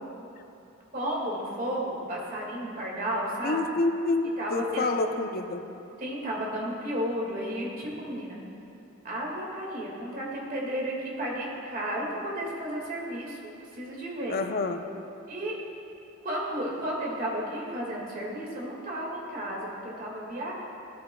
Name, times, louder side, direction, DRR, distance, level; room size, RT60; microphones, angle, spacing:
voice 1, 0.9-3.6 4.4-4.9 6.0-8.4 9.0-13.4 13.7-14.4 15.3-15.6 16.2-20.5, equal, 45° right, -3 dB, 1.9 m, -33 dB
voice 2, 3.4-5.6 14.3-14.8, left 3 dB, 45° left, 6 dB, 0.5 m, -28 dB
15.5 x 8.4 x 2.2 m, 2.8 s
head